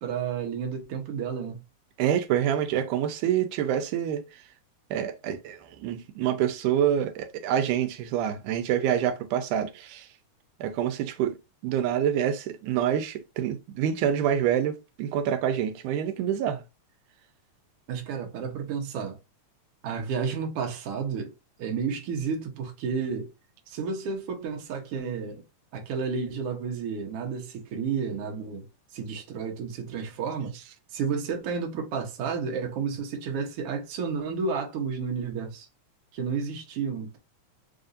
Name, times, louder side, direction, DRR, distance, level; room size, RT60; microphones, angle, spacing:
voice 1, 0.0-1.6 17.9-19.2 19.8-21.3 21.6-23.3 23.7-25.4 25.7-28.7 28.9-30.5 30.9-35.7 36.1-37.2, right 6 dB, 65° right, 1.6 m, -31 dB
voice 2, 2.0-4.2 4.9-10.1 10.6-11.4 11.6-16.6, right 9 dB, 85° right, 2.1 m, -27 dB
4.7 x 2.5 x 2.5 m
omnidirectional pair, 3.5 m